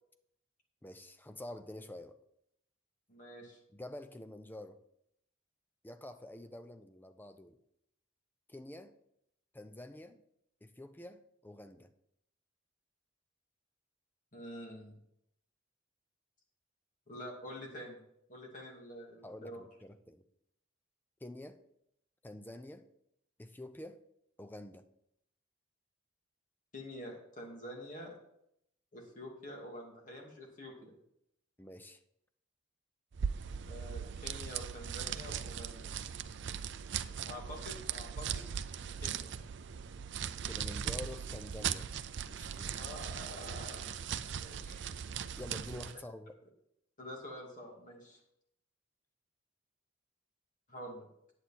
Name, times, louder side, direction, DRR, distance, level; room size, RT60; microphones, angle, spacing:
voice 1, 0.8-2.2 3.7-4.8 5.8-7.6 8.5-8.9 9.5-10.2 10.6-11.9 19.2-20.2 21.2-21.6 22.2-22.9 23.4-24.0 24.4-24.8 31.6-32.0 40.5-41.9 42.3-42.8 44.6-44.9 45.4-46.3, left 1 dB, 10° left, 9 dB, 0.6 m, -48 dB
voice 2, 3.1-3.6 14.3-15.0 17.1-18.0 18.3-19.6 26.7-28.1 28.9-31.0 33.7-36.1 37.3-38.5 39.0-39.3 42.7-44.8 47.0-48.2 50.7-51.1, left 1 dB, 40° left, -1 dB, 2.4 m, -47 dB
sound 1, 33.1-46.0, right 8 dB, 60° right, 0.5 m, -39 dB
9.7 x 8.2 x 4.3 m, 0.76 s
head